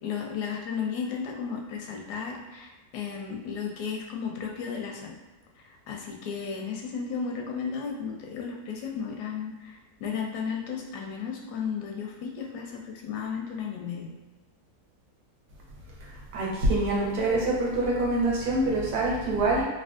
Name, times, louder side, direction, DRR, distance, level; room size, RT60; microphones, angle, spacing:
voice 1, 0.0-5.1 5.9-14.1, left 6 dB, 85° left, 1 dB, 1.2 m, -34 dB
voice 2, 16.3-19.6, right 2 dB, 85° right, -4 dB, 1.4 m, -25 dB
3.4 x 2.3 x 2.4 m, 1.2 s
omnidirectional pair, 1.7 m